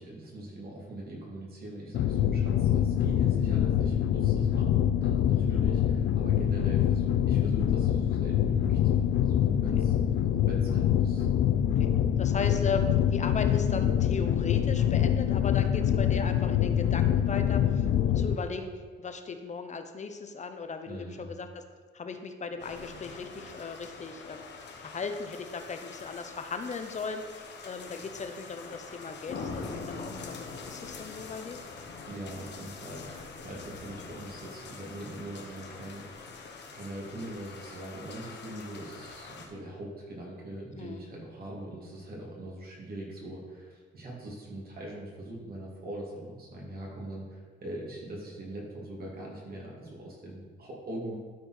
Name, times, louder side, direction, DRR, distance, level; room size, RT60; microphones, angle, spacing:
voice 1, 0.0-11.3 20.8-21.4 32.1-51.2, right 1 dB, 50° right, -3 dB, 2.8 m, -42 dB
sound 1, 1.9-18.4, left 10 dB, 75° left, 0.5 m, -25 dB
voice 2, 12.2-18.7 19.0-21.5 21.9-24.4 24.8-31.6 40.7-41.0, left 4 dB, 35° left, 7 dB, 0.9 m, -37 dB
sound 2, 22.6-39.5, left 4 dB, 60° left, 1.2 m, -44 dB
12.0 x 4.4 x 4.4 m, 1.5 s
cardioid pair, 90°, 20 cm